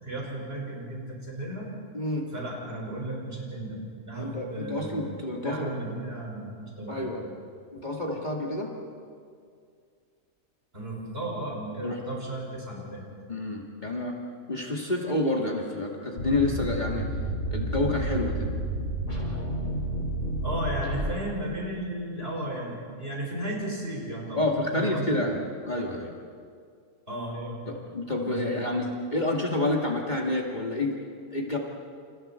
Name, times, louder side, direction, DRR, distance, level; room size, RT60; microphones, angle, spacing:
voice 1, 0.0-1.7 2.3-7.1 10.7-13.1 20.4-24.4 24.7-25.2 27.1-27.6 28.2-28.6, right 1 dB, 45° right, -2 dB, 5.9 m, -35 dB
voice 2, 1.9-2.3 4.2-5.7 6.9-7.3 7.7-8.8 11.8-12.0 13.3-14.2 14.5-17.1 17.5-18.5 24.4-26.1 27.7-31.1 31.3-31.6, left 2 dB, 35° left, -1 dB, 2.3 m, -29 dB
sound 1, 16.2-21.4, right 1 dB, 80° left, 6.5 m, -30 dB
29.5 x 28.5 x 4.5 m, 2.2 s
omnidirectional pair, 1.4 m